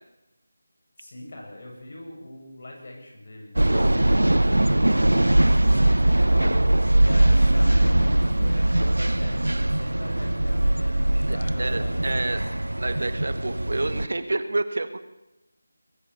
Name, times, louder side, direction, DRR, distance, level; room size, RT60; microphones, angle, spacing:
voice 1, 1.0-6.7 7.0-12.3, left 1 dB, 45° left, 0 dB, 7.9 m, -42 dB
sound 1, 3.6-14.1, right 1 dB, 75° right, 0.7 m, -21 dB
voice 2, 11.3-12.4 12.8-15.0, right 2 dB, 55° right, 11 dB, 1.8 m, -29 dB
21.5 x 14.5 x 8.5 m, 0.94 s
figure-of-eight pair, 160°, 0 cm